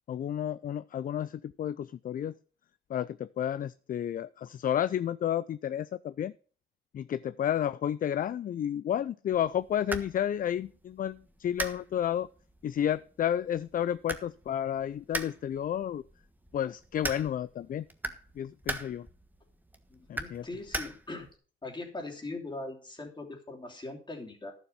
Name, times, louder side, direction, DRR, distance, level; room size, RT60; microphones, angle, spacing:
voice 1, 0.1-2.3 2.9-6.3 6.9-12.3 12.6-16.0 16.5-17.8 18.4-19.1 20.1-20.5, left 10 dB, 45° left, 17 dB, 0.4 m, -31 dB
sound 1, 9.3-21.4, right 1 dB, 10° right, 1.4 m, -41 dB
voice 2, 19.9-21.3 21.6-24.5, left 2 dB, 25° left, 2 dB, 3.1 m, -41 dB
11.5 x 7.3 x 5.5 m, 0.40 s
cardioid pair, 90°, 20 cm